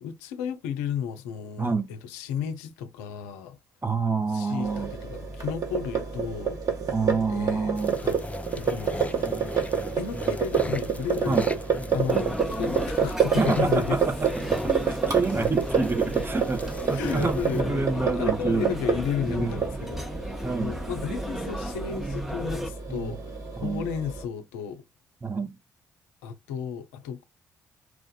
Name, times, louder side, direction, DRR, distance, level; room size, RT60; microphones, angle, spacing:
voice 1, 0.0-3.6 4.3-6.6 7.3-7.8 8.0-8.2 8.5-9.3 10.0-11.4 11.9-14.0 16.9-20.1 20.6-24.8 26.2-27.3, left 7 dB, 75° left, 0.5 m, -33 dB
voice 2, 1.6-1.9 3.8-4.9 6.9-7.9 11.2-11.5 13.4-14.1 14.5-18.8 19.3-19.5 20.4-20.7 22.9-23.2 23.6-23.9 25.2-25.6, right 4 dB, 25° right, 1.0 m, -28 dB
sound 1, 4.6-24.2, right 6 dB, 45° right, 1.7 m, -29 dB
sound 2, 7.7-17.6, left 2 dB, 15° left, 0.7 m, -38 dB
sound 3, 12.1-22.7, equal, 5° right, 1.0 m, -34 dB
4.6 x 2.5 x 3.9 m
figure-of-eight pair, 40°, 8 cm